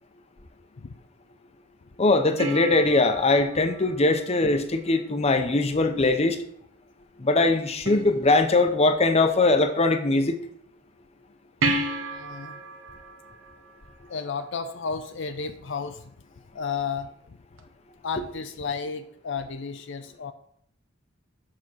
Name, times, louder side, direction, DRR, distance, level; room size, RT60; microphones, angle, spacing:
voice 1, 2.0-6.4 7.2-10.4, left 2 dB, 30° left, 8 dB, 0.8 m, -21 dB
sound 1, 2.4-5.0 7.8-8.8 11.6-14.5 17.6-17.7, right 2 dB, 85° right, 1.2 m, -33 dB
voice 2, 12.1-12.6 14.1-16.1 16.5-17.4 18.0-20.3, left 5 dB, 65° left, 9 dB, 0.6 m, -33 dB
7.6 x 5.3 x 6.2 m, 0.68 s
head